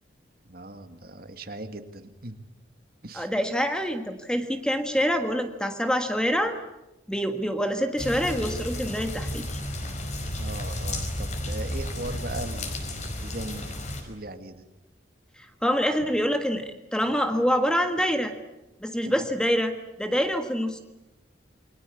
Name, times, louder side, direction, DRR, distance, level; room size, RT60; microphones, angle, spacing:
voice 1, 0.4-2.4 3.0-3.3 10.4-13.6 14.0-14.7 19.0-19.3, right 1 dB, 50° right, 8 dB, 2.1 m, -39 dB
voice 2, 3.1-6.6 7.1-9.6 15.4-16.6 16.9-18.3 18.8-20.8, equal, 5° left, 6 dB, 1.6 m, -26 dB
sound 1, 8.0-14.0, left 1 dB, 35° left, 4.8 m, -32 dB
29.0 x 22.5 x 8.4 m, 0.96 s
head